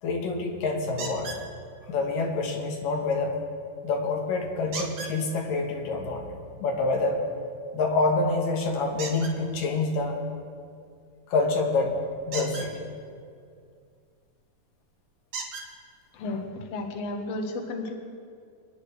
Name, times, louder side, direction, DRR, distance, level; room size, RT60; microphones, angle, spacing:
voice 1, 0.0-1.4 1.8-3.4 3.8-6.2 6.6-7.2 7.7-10.2 11.3-12.0 12.3-12.9, left 3 dB, 80° left, 1 dB, 3.0 m, -27 dB
sound 1, 1.0-1.4 4.7-5.2 9.0-9.3 12.2-12.7 14.4-14.5 15.3-15.7 16.7-16.8 17.3-17.4, right 4 dB, 65° right, 3.2 m, -35 dB
voice 2, 16.1-17.9, left 2 dB, 60° left, 3 dB, 2.0 m, -33 dB
26.0 x 10.5 x 3.4 m, 2.3 s
omnidirectional pair, 3.9 m